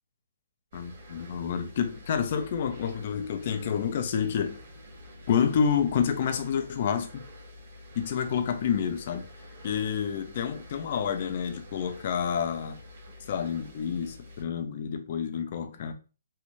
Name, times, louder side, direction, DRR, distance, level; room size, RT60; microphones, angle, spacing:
voice 1, 0.7-4.6 5.3-7.3 7.9-9.3 9.6-12.8 13.3-15.9, left 7 dB, 50° left, 0.6 m, -29 dB
sound 1, 0.7-14.4, left 1 dB, 55° right, 1.3 m, -48 dB
3.2 x 2.5 x 3.1 m
hypercardioid pair, 140°, 0 cm